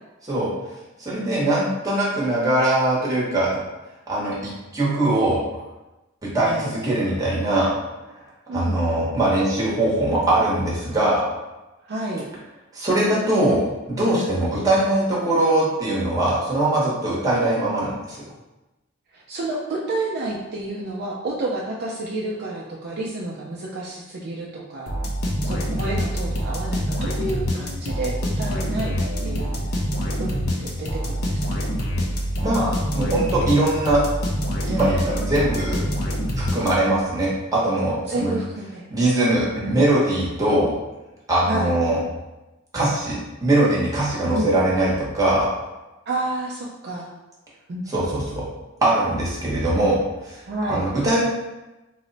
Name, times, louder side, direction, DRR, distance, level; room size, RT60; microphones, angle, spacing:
voice 1, 1.0-3.6 4.1-5.4 6.2-7.7 8.5-11.2 12.7-13.6 13.9-18.2 32.4-34.0 34.7-35.9 36.4-38.3 38.9-40.8 41.3-42.0 42.7-45.5 47.9-48.4 48.8-50.4 50.7-51.2, right 1 dB, 15° right, -6 dB, 0.9 m, -21 dB
voice 2, 6.4-6.7 8.5-8.8 11.8-12.3 19.1-25.0 25.4-29.0 29.2-29.6 30.2-31.4 36.6-36.8 38.1-38.9 41.5-41.7 44.3-44.5 46.1-47.1 47.7-47.9 50.5-50.9, right 2 dB, 50° right, -3 dB, 0.4 m, -30 dB
sound 1, 24.9-37.1, equal, 75° left, 0.6 m, -26 dB
3.0 x 2.1 x 3.8 m, 1.0 s
head